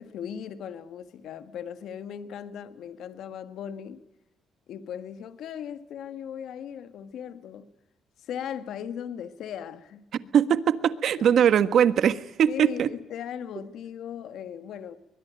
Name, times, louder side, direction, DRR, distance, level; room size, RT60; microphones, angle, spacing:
voice 1, 0.0-4.0 4.7-7.7 8.2-10.0 11.2-11.4 12.5-15.0, left 8 dB, 75° left, 1.6 m, -38 dB
voice 2, 10.3-12.9, right 8 dB, 65° right, 1.4 m, -21 dB
23.0 x 21.0 x 9.0 m
cardioid pair, 90°, 0 cm